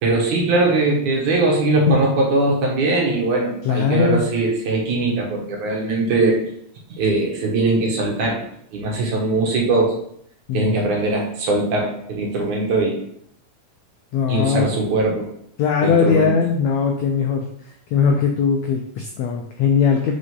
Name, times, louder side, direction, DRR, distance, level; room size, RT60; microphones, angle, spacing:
voice 1, 0.0-6.4 6.9-8.4 8.7-10.0 10.5-13.0 14.3-15.3 15.8-16.3, right 2 dB, 60° right, -1 dB, 2.6 m, -20 dB
voice 2, 3.6-4.2 10.5-10.8 14.1-14.7 15.6-17.5 17.9-20.1, left 6 dB, 90° left, 2 dB, 1.5 m, -19 dB
5.5 x 5.0 x 5.5 m, 0.69 s
omnidirectional pair, 4.1 m